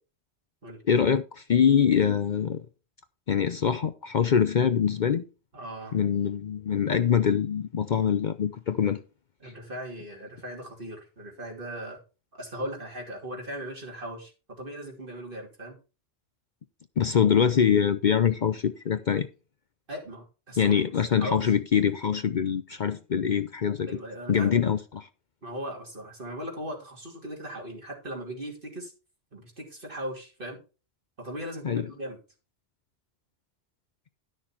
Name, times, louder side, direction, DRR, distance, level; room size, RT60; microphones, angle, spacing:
voice 1, 0.9-2.6 3.3-5.2 5.9-9.0 9.4-9.5 17.0-19.3 20.6-24.0 24.3-25.1 31.6-31.9, left 7 dB, 50° left, 0.7 m, -24 dB
voice 2, 5.5-6.0 9.4-12.0 12.3-15.8 19.9-20.7 21.2-21.5 23.9-24.6 25.4-28.9 29.3-30.6 31.2-32.2, equal, 50° right, 3.1 m, -38 dB
11.5 x 6.4 x 4.4 m
omnidirectional pair, 1.1 m